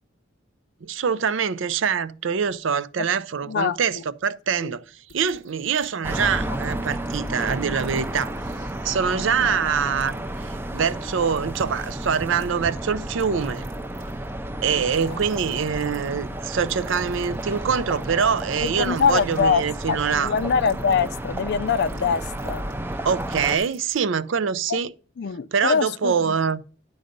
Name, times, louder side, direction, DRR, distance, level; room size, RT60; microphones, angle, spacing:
voice 1, 0.8-10.1 10.4-13.6 14.6-20.3 23.0-24.9 25.5-26.6, right 6 dB, 70° right, 0.5 m, -24 dB
voice 2, 3.5-4.0 4.6-4.7 9.4-9.6 14.7-15.2 18.6-22.6 24.7-24.8 25.2-26.4, left 6 dB, 55° left, 0.4 m, -24 dB
sound 1, 5.1-6.3 6.5-9.7 10.0-10.5 11.2-12.7 13.1-14.4 14.8-24.0, right 3 dB, 90° right, 2.8 m, -52 dB
sound 2, 6.0-23.6, right 1 dB, 10° right, 0.5 m, -32 dB
10.5 x 3.9 x 5.2 m
head